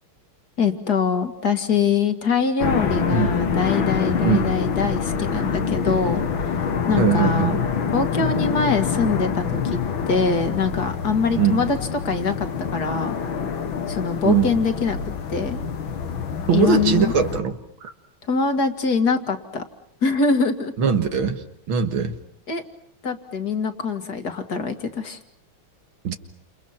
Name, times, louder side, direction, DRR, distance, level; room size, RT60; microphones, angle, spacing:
voice 1, 0.6-7.6 7.9-9.8 10.1-11.8 12.0-13.2 13.9-15.0 15.3-15.6 16.5-17.1 18.3-19.6 20.0-20.7 22.5-22.6 23.0-25.2, left 5 dB, 50° left, 8 dB, 2.5 m, -23 dB
sound 1, 2.6-17.4, left 6 dB, 70° left, 2.3 m, -26 dB
voice 2, 7.0-7.6 11.4-11.7 14.2-14.5 16.5-17.9 20.8-22.2 26.0-26.1, right 6 dB, 75° right, 7 dB, 2.4 m, -21 dB
30.0 x 28.5 x 5.9 m, 0.71 s
omnidirectional pair, 2.3 m